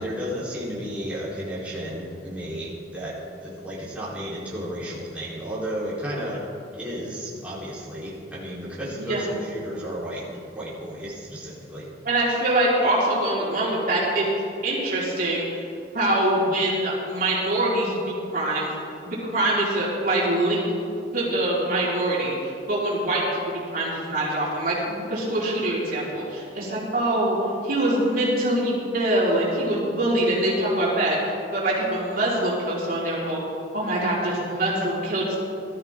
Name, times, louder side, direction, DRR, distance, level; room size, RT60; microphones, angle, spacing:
voice 1, 0.0-3.1 3.4-6.4 6.8-10.2 10.5-11.9, equal, 10° right, -9 dB, 4.1 m, -33 dB
voice 2, 12.0-14.3 14.6-15.6 15.9-18.7 19.0-20.7 21.1-22.3 22.7-27.4 27.6-31.2 31.5-33.4 33.7-35.4, right 1 dB, 55° right, -7 dB, 4.6 m, -24 dB
21.5 x 13.5 x 3.8 m, 2.5 s
head